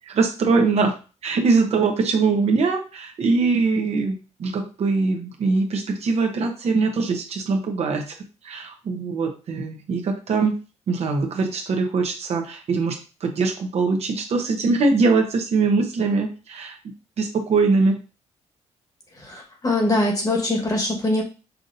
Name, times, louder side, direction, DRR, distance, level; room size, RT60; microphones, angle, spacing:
voice 1, 0.1-0.9 1.2-4.1 4.4-8.1 8.4-10.5 10.9-16.8 17.2-18.0, right 4 dB, 60° right, 4 dB, 0.9 m, -22 dB
voice 2, 19.2-21.2, left 2 dB, 30° left, 1 dB, 1.4 m, -22 dB
5.7 x 2.6 x 2.6 m, 0.34 s
cardioid pair, 100°, 12 cm